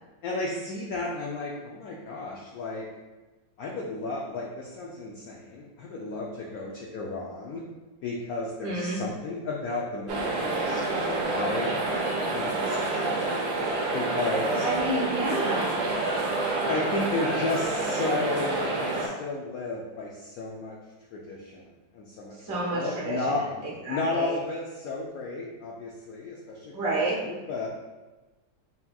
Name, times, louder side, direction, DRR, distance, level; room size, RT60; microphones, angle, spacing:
voice 1, 0.2-2.9 3.6-7.6 8.0-10.8 11.1-11.7 12.3-13.2 13.9-14.7 16.7-20.8 21.1-21.7 21.9-23.4 23.9-27.7, left 2 dB, 75° left, -2 dB, 0.8 m, -33 dB
voice 2, 8.6-9.0 14.6-15.7 22.4-24.4 26.7-27.2, right 2 dB, 55° right, -4 dB, 1.0 m, -30 dB
sound 1, 10.1-19.1, right 2 dB, 85° right, 1.4 m, -28 dB
4.2 x 3.6 x 2.2 m, 1.2 s
omnidirectional pair, 2.1 m